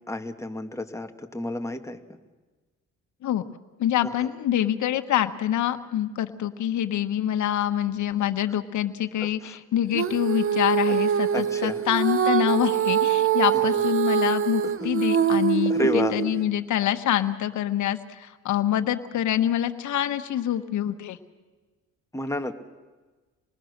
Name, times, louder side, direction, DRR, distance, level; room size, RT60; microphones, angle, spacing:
voice 1, 0.1-2.0 4.0-4.3 9.2-9.6 10.9-11.0 11.3-11.8 13.5-13.8 14.6-14.7 15.7-16.2 22.1-22.5, left 1 dB, 10° left, 5 dB, 1.9 m, -30 dB
voice 2, 3.8-21.2, left 11 dB, 75° left, 8 dB, 1.4 m, -26 dB
Female singing, 9.9-16.4, right 8 dB, 45° right, 1.0 m, -24 dB
27.0 x 20.0 x 6.7 m, 1.3 s
cardioid pair, 90°, 30 cm